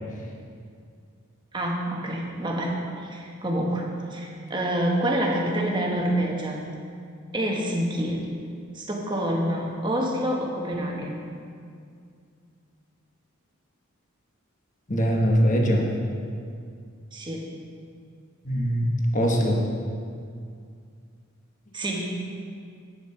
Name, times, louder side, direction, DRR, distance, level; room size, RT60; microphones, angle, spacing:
voice 1, 1.5-6.7 7.3-8.3 8.7-11.2 17.1-17.5 21.7-22.3, right 1 dB, 20° right, -1 dB, 1.2 m, -27 dB
voice 2, 14.9-15.9 18.4-19.6, equal, 35° left, 0 dB, 1.3 m, -22 dB
9.4 x 7.8 x 5.7 m, 2.3 s
head